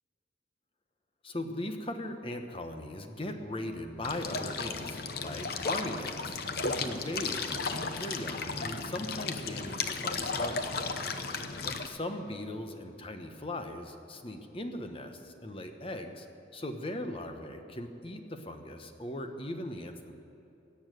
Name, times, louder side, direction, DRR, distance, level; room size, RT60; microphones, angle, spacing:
voice 1, 1.2-10.8 11.6-16.3 16.5-20.1, left 1 dB, 30° left, 6 dB, 1.0 m, -39 dB
sound 1, 4.0-11.9, left 4 dB, 55° left, 0.8 m, -34 dB
17.5 x 7.2 x 9.2 m, 2.9 s
head